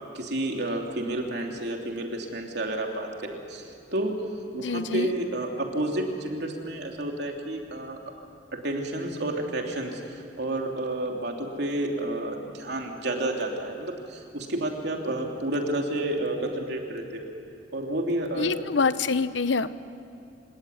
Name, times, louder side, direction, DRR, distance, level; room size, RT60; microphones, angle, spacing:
voice 1, 0.1-4.2 4.5-8.0 8.5-17.3 17.7-18.5, right 1 dB, 65° right, 1 dB, 3.1 m, -30 dB
voice 2, 4.6-5.1 18.4-19.8, left 4 dB, 85° left, 14 dB, 0.8 m, -26 dB
26.5 x 18.0 x 9.5 m, 2.6 s
head